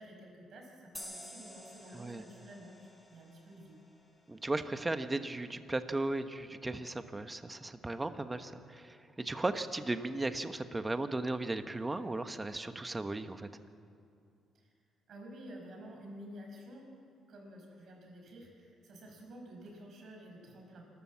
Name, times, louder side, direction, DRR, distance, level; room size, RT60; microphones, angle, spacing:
voice 1, 0.0-3.8 14.5-14.7 15.1-16.9 17.3-20.9, equal, 60° right, 1 dB, 6.0 m, -51 dB
sound 1, 0.9-4.3, equal, 5° left, 2.9 m, -51 dB
voice 2, 4.3-13.5, right 2 dB, 20° right, 9 dB, 1.1 m, -36 dB
27.0 x 13.0 x 7.5 m, 2.5 s
cardioid pair, 90°, 0 cm